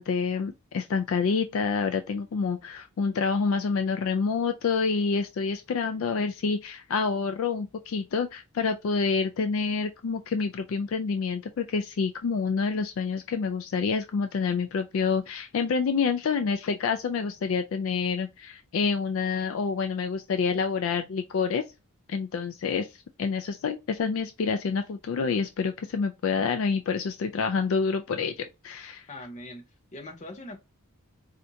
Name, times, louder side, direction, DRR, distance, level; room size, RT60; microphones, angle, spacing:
voice 1, 0.0-21.6 22.1-29.1, left 5 dB, 60° left, 0.3 m, -28 dB
voice 2, 29.1-29.6 29.9-30.6, left 1 dB, 30° left, 0.7 m, -41 dB
4.3 x 2.5 x 2.6 m
head